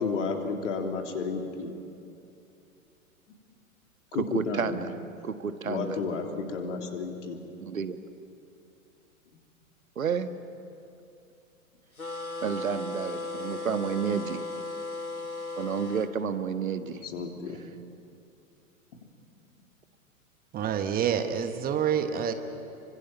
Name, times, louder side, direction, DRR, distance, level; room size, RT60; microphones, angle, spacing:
voice 1, 0.0-1.7 4.1-4.8 5.6-7.4 16.8-17.6, left 4 dB, 60° left, 3 dB, 3.4 m, -32 dB
voice 2, 4.3-4.9 5.2-6.0 7.6-8.0 9.9-10.3 12.4-14.4 15.6-17.0, right 7 dB, 70° right, 10 dB, 1.5 m, -30 dB
sound 1, 12.0-16.1, left 2 dB, 90° left, 1.9 m, -36 dB
voice 3, 20.5-22.3, right 8 dB, 20° right, 8 dB, 1.3 m, -27 dB
28.0 x 24.5 x 7.4 m, 2.8 s
figure-of-eight pair, 105°, 42 cm